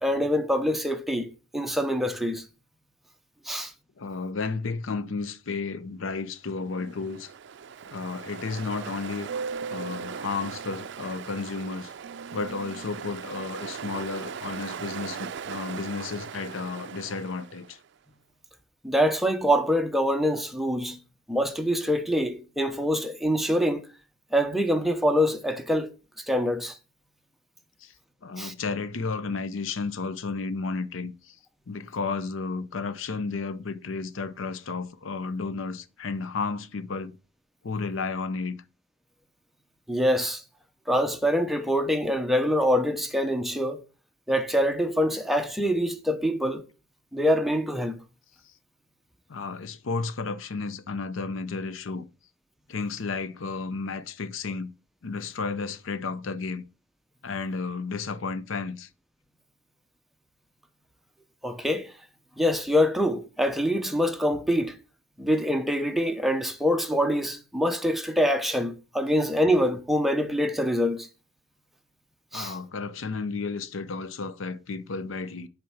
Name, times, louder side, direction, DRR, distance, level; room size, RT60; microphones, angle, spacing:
voice 1, 0.0-2.4 3.5-3.7 18.8-21.0 21.3-23.8 24.3-25.9 26.2-26.8 28.4-28.5 39.9-40.4 40.9-43.8 44.3-46.6 47.1-48.0 61.4-61.9 62.4-64.8 65.2-71.1 72.3-72.5, equal, ahead, 0.7 m, -25 dB
voice 2, 4.0-7.3 7.9-9.3 9.7-11.9 12.3-17.8 27.8-27.9 28.2-31.4 31.7-37.2 37.6-38.6 49.3-52.1 52.7-54.7 55.0-56.6 57.2-58.9 72.3-75.5, left 4 dB, 80° left, 0.6 m, -32 dB
Ocean, 6.7-17.8, right 6 dB, 60° right, 0.4 m, -38 dB
7.7 x 4.4 x 5.6 m
head